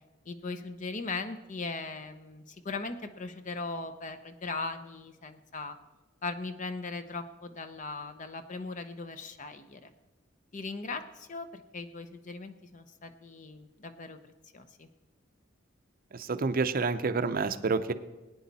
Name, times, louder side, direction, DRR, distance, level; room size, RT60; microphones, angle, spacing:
voice 1, 0.3-5.8 6.2-9.9 10.5-14.2 14.5-14.9, left 3 dB, 40° left, 9 dB, 0.7 m, -39 dB
voice 2, 16.1-17.9, right 4 dB, 45° right, 11 dB, 0.6 m, -28 dB
20.0 x 9.5 x 4.1 m, 1.1 s
head